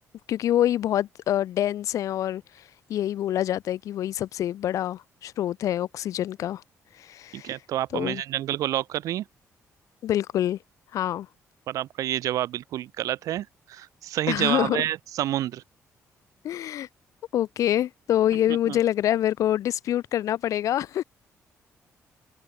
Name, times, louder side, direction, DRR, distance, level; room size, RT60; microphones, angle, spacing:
voice 1, 0.3-2.4 2.9-6.6 7.0-7.5 7.9-8.2 10.0-10.6 10.9-11.3 14.3-14.8 16.4-16.9 17.3-21.0, left 12 dB, 75° left, 1.6 m, -26 dB
voice 2, 7.3-9.3 11.7-15.6 18.5-18.8, right 13 dB, 85° right, 3.3 m, -29 dB
cardioid pair, 110°, 6 cm